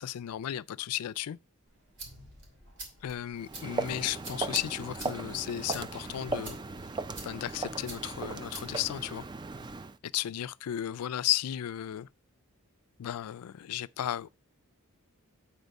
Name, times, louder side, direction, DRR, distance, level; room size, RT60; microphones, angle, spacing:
voice 1, 0.0-1.4 3.0-6.6 7.2-9.2 10.0-12.1 13.0-14.3, left 12 dB, 85° left, 0.3 m, -34 dB
sound 1, 1.7-9.7, right 2 dB, 55° right, 2.9 m, -49 dB
Walk footsteps, 3.4-10.0, right 3 dB, 20° right, 0.3 m, -37 dB
8.1 x 4.4 x 5.2 m
head